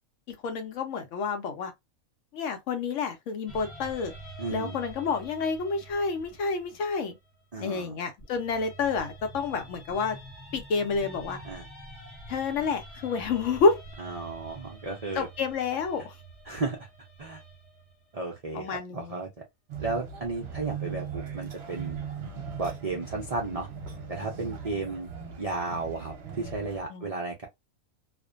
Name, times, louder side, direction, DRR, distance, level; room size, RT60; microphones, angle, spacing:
voice 1, 0.4-1.7 2.3-4.1 4.5-7.2 7.6-10.2 10.5-11.4 12.3-13.8 15.1-16.1 18.5-19.2 26.9-27.1, left 4 dB, 70° left, 0.9 m, -29 dB
sound 1, 3.5-7.7 8.2-18.2 20.2-22.1, right 1 dB, 30° left, 0.9 m, -47 dB
voice 2, 4.4-4.8 7.5-8.0 11.4-11.6 14.0-15.3 16.5-16.8 17.2-17.4 18.1-19.3 19.8-22.0 22.6-23.7 24.1-25.1 25.4-27.5, right 3 dB, 75° right, 0.3 m, -34 dB
sound 2, 19.7-26.8, right 6 dB, 55° right, 0.9 m, -39 dB
2.5 x 2.1 x 2.4 m
omnidirectional pair, 1.5 m